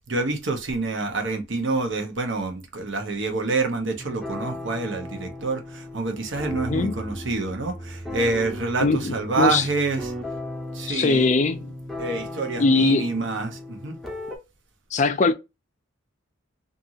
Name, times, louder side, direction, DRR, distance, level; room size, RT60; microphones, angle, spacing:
voice 1, 0.1-10.1 10.7-11.3 12.0-14.0, right 3 dB, 65° right, 0.8 m, -27 dB
sound 1, 4.0-14.4, left 1 dB, ahead, 0.7 m, -36 dB
voice 2, 8.8-9.7 10.9-11.8 12.6-13.1 14.9-15.3, left 3 dB, 35° left, 0.4 m, -21 dB
2.6 x 2.5 x 2.7 m
head